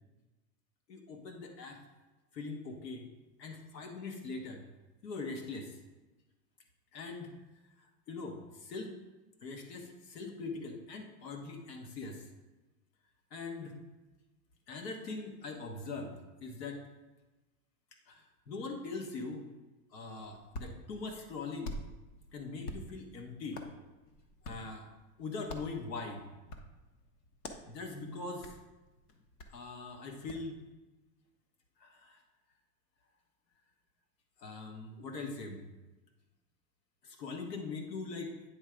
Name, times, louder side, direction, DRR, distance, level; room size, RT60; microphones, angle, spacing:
voice 1, 0.9-1.8 2.3-3.1 3.4-4.6 5.0-5.7 6.9-7.3 8.1-8.9 9.4-12.2 13.3-13.8 14.7-16.1 16.4-16.8 18.1-19.5 19.9-21.8 22.3-23.6 24.4-24.9 25.2-26.2 27.7-28.5 29.5-30.6 31.8-32.2 34.4-35.6 37.0-38.3, left 3 dB, 90° left, 3 dB, 1.3 m, -41 dB
Hands, 20.2-30.5, left 1 dB, 70° left, 1.0 m, -49 dB
9.3 x 3.4 x 4.9 m, 1.1 s
supercardioid pair, 155°, 48 cm